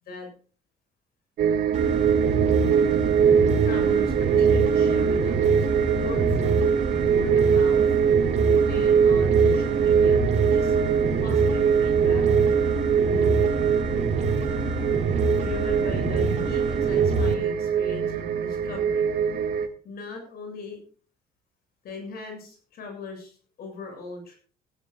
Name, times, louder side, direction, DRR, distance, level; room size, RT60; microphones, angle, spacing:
sound 1, 1.4-19.7, right 7 dB, 65° right, 2.0 m, -22 dB
sound 2, 1.7-17.3, right 3 dB, 40° right, 3.1 m, -27 dB
voice 1, 3.6-6.7 7.1-7.8 8.7-10.8 11.2-12.2 13.0-13.3 15.3-19.0 19.8-20.8 21.8-24.4, left 3 dB, 65° left, 5 dB, 7.2 m, -39 dB
16.5 x 16.0 x 2.4 m, 0.39 s
cardioid pair, 110°, 17 cm